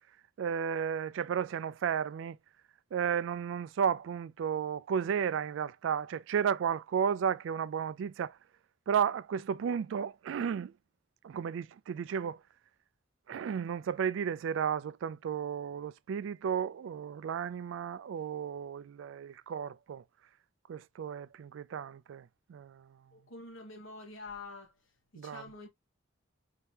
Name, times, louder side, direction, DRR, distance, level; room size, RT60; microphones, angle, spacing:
voice 1, 0.4-2.4 2.9-8.4 8.9-10.7 11.2-12.4 13.3-20.0 20.7-23.1 25.2-25.4, right 7 dB, 65° right, 0.3 m, -33 dB
voice 2, 23.1-24.7 25.1-25.7, left 3 dB, 80° left, 1.5 m, -46 dB
4.5 x 2.8 x 3.2 m
head